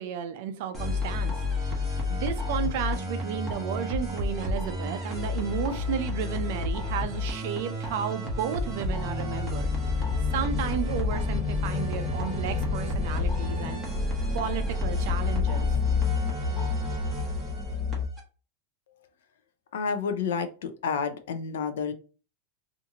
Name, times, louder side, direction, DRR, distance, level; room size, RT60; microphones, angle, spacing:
voice 1, 0.0-1.3 2.1-9.7 10.3-13.8 14.3-15.7, right 8 dB, 50° right, 0.4 m, -33 dB
sound 1, 0.7-18.2, left 1 dB, 10° right, 0.8 m, -31 dB
sound 2, 8.6-18.1, left 7 dB, 30° left, 0.7 m, -30 dB
voice 2, 19.7-21.9, left 6 dB, 75° left, 0.4 m, -30 dB
2.6 x 2.5 x 2.8 m
supercardioid pair, 175°, 0 cm